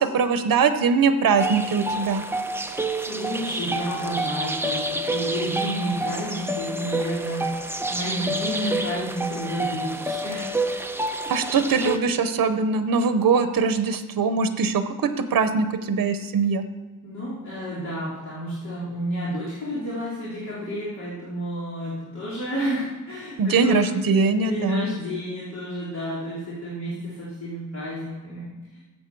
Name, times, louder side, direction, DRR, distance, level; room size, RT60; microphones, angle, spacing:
voice 1, 0.0-2.2 11.3-16.6 23.4-24.9, right 5 dB, 85° right, 10 dB, 0.8 m, -22 dB
sound 1, 1.4-12.0, right 2 dB, 5° right, 0.6 m, -28 dB
voice 2, 2.9-7.5 7.9-10.5 17.0-23.8 24.3-28.8, equal, 55° left, -8 dB, 3.0 m, -31 dB
13.5 x 7.8 x 4.6 m, 1.2 s
wide cardioid pair, 155°, 34 cm